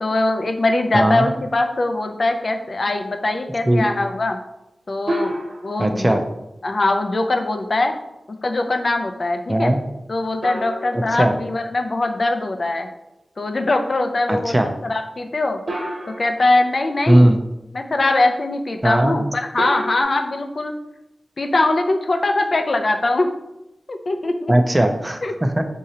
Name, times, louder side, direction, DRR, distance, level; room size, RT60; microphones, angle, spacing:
voice 1, 0.0-4.4 4.9-6.2 6.6-7.9 8.3-9.7 10.1-12.9 13.4-15.6 16.1-17.3 17.7-20.7 21.4-23.3 23.9-24.5 25.2-25.3, left 2 dB, 55° left, 6 dB, 0.4 m, -21 dB
voice 2, 0.9-1.3 3.7-3.8 5.8-6.2 9.5-9.8 10.9-11.4 14.3-14.7 17.1-17.4 18.8-19.2 24.5-25.6, right 1 dB, 20° right, 6 dB, 0.4 m, -17 dB
sound 1, 5.1-6.1 10.4-12.0 15.7-16.8 19.6-20.0, right 1 dB, 60° right, 0.9 m, -29 dB
3.7 x 2.8 x 4.2 m, 0.91 s
wide cardioid pair, 80°, 0 cm